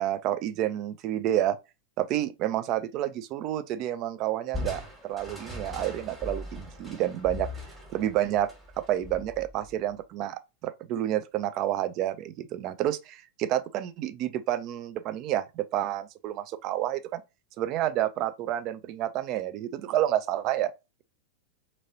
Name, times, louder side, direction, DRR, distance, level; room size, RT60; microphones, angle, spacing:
voice 1, 0.0-1.6 2.0-7.5 7.9-8.5 8.8-17.2 17.6-20.7, right 12 dB, 40° right, 0.3 m, -29 dB
Crushing, 4.5-9.9, left 2 dB, 10° right, 1.4 m, -40 dB
2.9 x 2.7 x 2.7 m
figure-of-eight pair, 90°, 0 cm